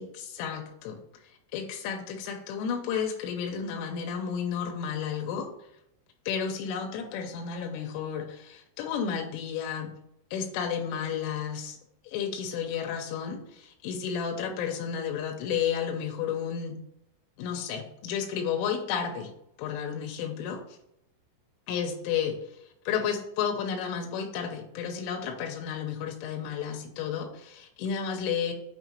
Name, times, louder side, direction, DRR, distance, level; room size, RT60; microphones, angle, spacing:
voice 1, 0.0-5.5 6.3-9.9 10.3-11.8 12.0-16.8 17.4-19.3 19.6-20.8 21.7-28.5, left 7 dB, 85° left, 2 dB, 3.1 m, -32 dB
8.3 x 3.2 x 4.3 m, 0.80 s
omnidirectional pair, 5.8 m